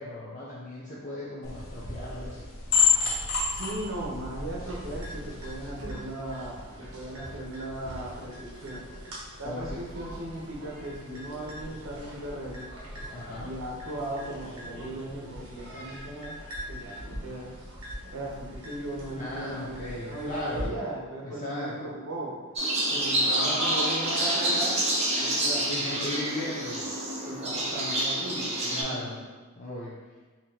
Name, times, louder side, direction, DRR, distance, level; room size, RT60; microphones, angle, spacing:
voice 1, 0.0-2.5 9.4-9.8 13.1-13.5 19.2-20.8 21.2-21.7 25.7-26.9 28.7-29.2 29.6-30.0, left 1 dB, 35° left, -6 dB, 0.5 m, -37 dB
sound 1, 1.4-5.7, left 5 dB, 65° left, 0.8 m, -28 dB
voice 2, 3.5-8.9 9.4-12.7 13.4-16.4 16.7-17.6 18.1-19.8 20.0-22.4 22.9-24.8 25.1-25.7 26.0-26.1 27.3-29.2, right 1 dB, 65° right, -3 dB, 0.8 m, -37 dB
sound 2, 4.6-20.7, equal, 90° right, 1.0 m, -42 dB
sound 3, 22.6-28.8, right 1 dB, 30° right, 0.6 m, -27 dB
3.9 x 2.8 x 2.8 m, 1.3 s
head